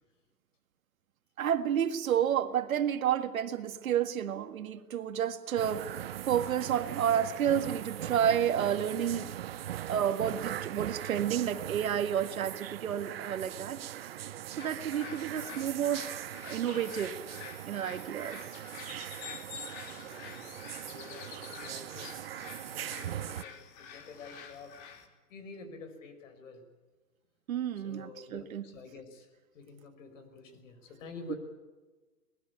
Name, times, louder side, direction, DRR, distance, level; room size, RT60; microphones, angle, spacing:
voice 1, 1.4-9.4 9.9-14.1 14.5-16.1 16.4-17.2 17.6-18.4 27.5-28.7 31.3-31.4, right 9 dB, 60° right, 10 dB, 1.9 m, -30 dB
sound 1, 5.6-23.4, right 11 dB, 40° right, 0.7 m, -40 dB
sound 2, 14.6-25.1, left 6 dB, 30° left, 2.7 m, -48 dB
voice 2, 19.8-24.8 25.3-26.6 27.8-29.3 29.5-31.4, left 4 dB, 50° left, 9 dB, 5.8 m, -49 dB
23.0 x 20.0 x 8.5 m, 1.3 s
hypercardioid pair, 155°, 47 cm